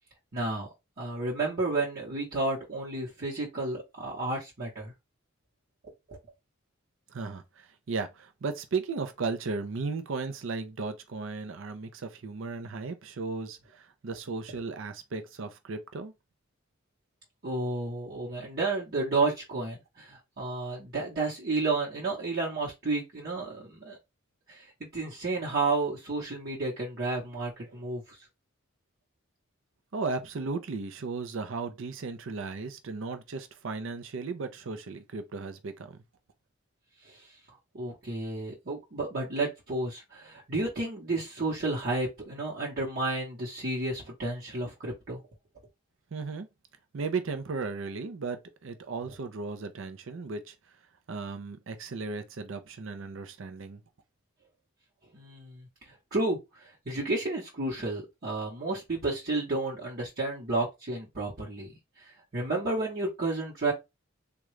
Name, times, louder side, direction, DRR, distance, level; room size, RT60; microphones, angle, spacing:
voice 1, 0.3-0.7 1.0-4.9 6.1-6.2 17.4-24.0 24.5-28.2 37.0-37.3 37.7-45.2 55.1-63.7, right 2 dB, 50° right, 0.9 m, -32 dB
voice 2, 7.1-16.1 29.9-36.0 46.1-46.5 46.9-50.5 51.1-53.8, right 4 dB, 65° right, 0.5 m, -35 dB
3.6 x 2.3 x 3.1 m
head